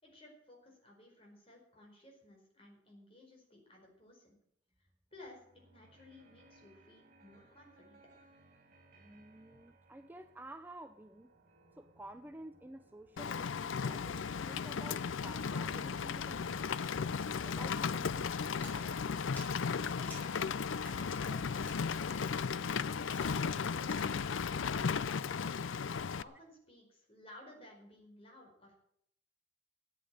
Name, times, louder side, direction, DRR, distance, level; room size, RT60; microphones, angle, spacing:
voice 1, 0.0-4.4 4.8-8.0 20.0-22.2 22.8-28.7, left 1 dB, 30° left, 4.9 m, -57 dB
sound 1, 5.1-21.6, right 2 dB, 45° right, 4.2 m, -66 dB
voice 2, 8.9-11.3 11.7-16.9 17.3-18.4, right 1 dB, 10° right, 0.5 m, -52 dB
Rain, 13.2-26.2, left 6 dB, 85° left, 0.5 m, -35 dB
Splash splatter, 18.6-24.2, equal, 10° left, 6.1 m, -54 dB
14.0 x 8.6 x 9.1 m
head